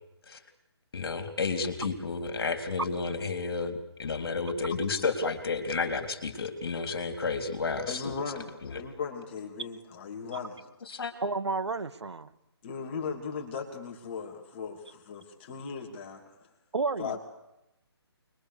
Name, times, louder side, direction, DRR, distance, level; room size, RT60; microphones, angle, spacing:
voice 1, 0.9-3.7 4.0-8.0 8.6-8.8 10.9-11.1, left 4 dB, 60° left, 6 dB, 3.8 m, -31 dB
voice 2, 7.9-10.6 12.6-16.2 17.0-17.2, left 5 dB, 25° left, 1 dB, 3.0 m, -37 dB
voice 3, 11.2-12.3 16.7-17.2, right 4 dB, 90° right, 13 dB, 1.7 m, -31 dB
26.0 x 22.0 x 6.9 m, 0.88 s
hypercardioid pair, 170°, 14 cm